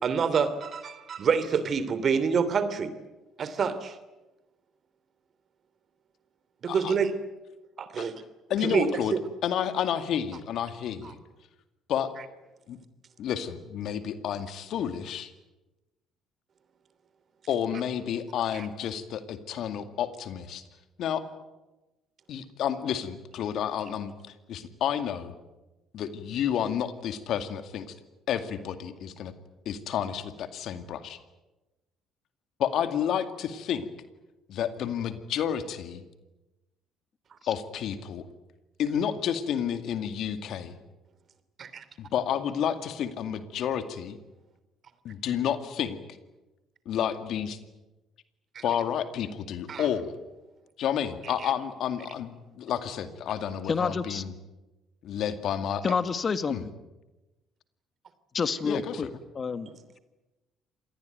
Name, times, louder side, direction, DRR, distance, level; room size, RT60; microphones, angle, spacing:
voice 1, 0.0-2.9 3.4-4.0 6.6-7.1 7.8-8.1 8.6-9.2 18.5-18.7 41.6-41.8 48.5-48.6 49.7-49.9, right 6 dB, 50° right, 13 dB, 3.0 m, -27 dB
voice 2, 8.5-9.1 9.4-11.2 11.9-12.1 12.7-12.8 13.2-15.3 17.5-20.6 21.0-21.2 22.3-24.1 24.5-25.3 25.9-27.9 28.3-29.3 29.7-31.2 32.6-33.9 34.5-36.0 37.5-38.2 38.8-40.8 42.0-44.2 45.0-46.0 46.9-47.6 48.6-50.1 50.8-54.3 55.0-55.8 56.5-56.6 58.6-59.1, left 9 dB, 65° left, 10 dB, 2.2 m, -30 dB
voice 3, 53.7-54.2 55.8-56.7 58.3-59.1 59.3-59.7, left 5 dB, 40° left, 12 dB, 1.7 m, -28 dB
26.5 x 19.5 x 9.4 m, 1.1 s
hypercardioid pair, 60°, 0 cm